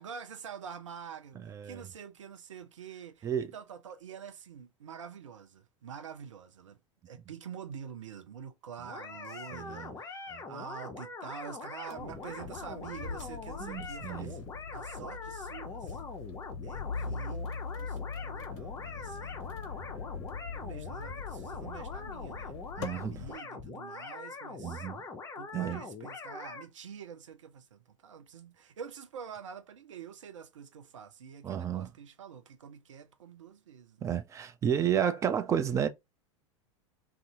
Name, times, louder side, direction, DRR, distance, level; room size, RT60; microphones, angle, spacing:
voice 1, 0.0-6.8 7.1-14.4 14.7-16.0 16.6-17.4 17.7-19.4 20.5-24.9 25.4-34.1, right 7 dB, 70° right, 0.6 m, -46 dB
voice 2, 1.5-1.8 3.2-3.5 9.5-9.9 10.3-10.4 13.6-14.3 22.8-23.1 24.6-25.0 25.5-25.8 31.4-31.9 34.0-35.9, right 9 dB, 20° right, 0.3 m, -31 dB
sound 1, 8.8-26.7, left 4 dB, 15° left, 0.7 m, -43 dB
sound 2, 11.9-23.4, left 5 dB, 55° left, 0.7 m, -41 dB
2.6 x 2.4 x 3.5 m
figure-of-eight pair, 85°, 17 cm